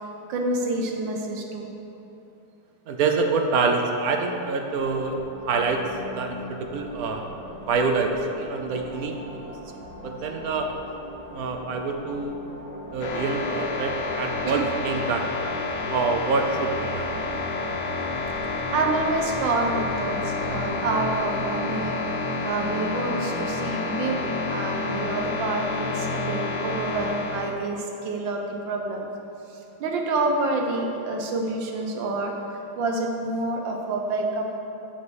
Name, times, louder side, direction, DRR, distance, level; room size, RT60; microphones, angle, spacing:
voice 1, 0.3-1.7 14.4-14.6 18.7-22.0 22.4-28.4 28.6-29.1 29.8-34.6, right 2 dB, 85° right, 2 dB, 1.6 m, -28 dB
voice 2, 2.9-5.2 5.5-5.8 6.1-7.2 7.6-9.2 9.5-9.6 10.0-10.8 11.3-12.4 12.9-15.3 15.9-17.1, right 4 dB, 65° right, 4 dB, 1.0 m, -26 dB
sound 1, 4.8-21.9, left 1 dB, 50° left, 1.7 m, -41 dB
sound 2, 13.0-27.5, left 3 dB, 75° left, 1.4 m, -29 dB
6.6 x 5.2 x 6.3 m, 2.8 s
omnidirectional pair, 2.0 m